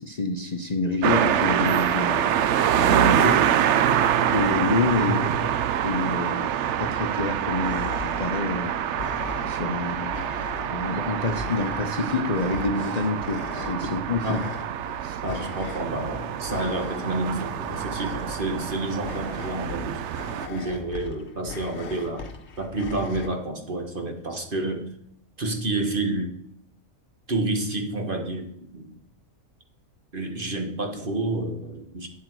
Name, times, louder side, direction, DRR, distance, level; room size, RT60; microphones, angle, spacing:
voice 1, 0.0-2.4 2.7-3.5 4.3-5.2 5.8-6.5 6.8-8.8 9.5-10.2 10.7-14.4 15.0-15.2, left 3 dB, 35° left, 4 dB, 0.8 m, -27 dB
sound 1, 1.0-20.5, right 9 dB, 65° right, 0.8 m, -26 dB
voice 2, 5.0-5.3 13.8-13.9 14.2-14.5 15.2-20.0 20.5-22.3 22.6-24.9 25.4-26.3 27.3-28.9 30.1-32.1, right 2 dB, 40° right, 3 dB, 1.6 m, -29 dB
Creature Pant (Fast), 7.6-23.3, left 4 dB, 55° left, 1.3 m, -40 dB
11.5 x 8.5 x 4.7 m, 0.73 s
omnidirectional pair, 1.4 m